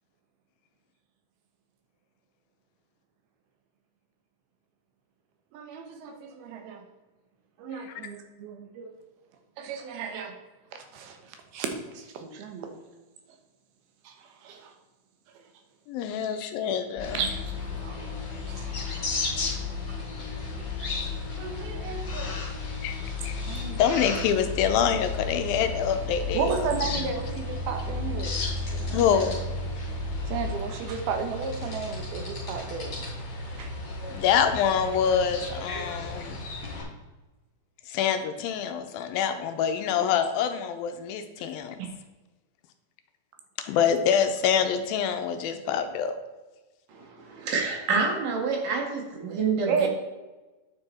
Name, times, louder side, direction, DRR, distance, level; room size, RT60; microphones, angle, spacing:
voice 1, 5.5-6.8 7.6-8.9 9.6-10.3 10.7-12.7 14.0-14.7 17.1-17.3 17.7-18.2 18.5-19.1 19.9-20.0 21.4-22.4 23.4-24.1 26.3-28.4 28.7-29.1 30.3-32.9 33.6-33.7 39.7-39.9 49.7-49.9, right 6 dB, 85° right, 5 dB, 3.1 m, -34 dB
voice 2, 15.9-17.2 22.8-23.0 23.2-23.4 23.8-26.4 26.9-27.0 28.9-29.4 34.1-36.5 37.9-41.8 43.6-46.2, left 8 dB, 85° left, 8 dB, 2.4 m, -26 dB
sound 1, 17.0-30.6, left 10 dB, 55° left, 2.6 m, -36 dB
sound 2, 17.0-36.8, left 1 dB, 35° left, 3.4 m, -35 dB
voice 3, 46.9-49.9, right 4 dB, 65° right, 1 dB, 3.1 m, -28 dB
9.8 x 6.8 x 4.2 m, 1.2 s
omnidirectional pair, 4.3 m